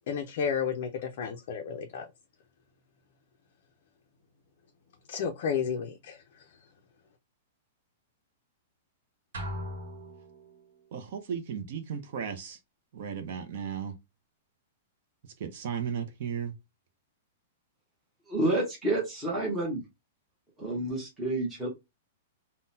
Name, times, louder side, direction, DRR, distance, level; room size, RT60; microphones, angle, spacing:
voice 1, 0.0-2.0 5.1-6.2, left 7 dB, 45° left, 0.4 m, -32 dB
sound 1, 9.3-10.8, equal, 75° right, 1.0 m, -39 dB
voice 2, 10.9-12.6 12.9-13.9 15.4-16.5, right 7 dB, 45° right, 0.5 m, -35 dB
voice 3, 18.3-19.8 20.6-21.7, right 1 dB, 10° right, 0.9 m, -29 dB
3.7 x 2.0 x 2.6 m
supercardioid pair, 175°, 0 cm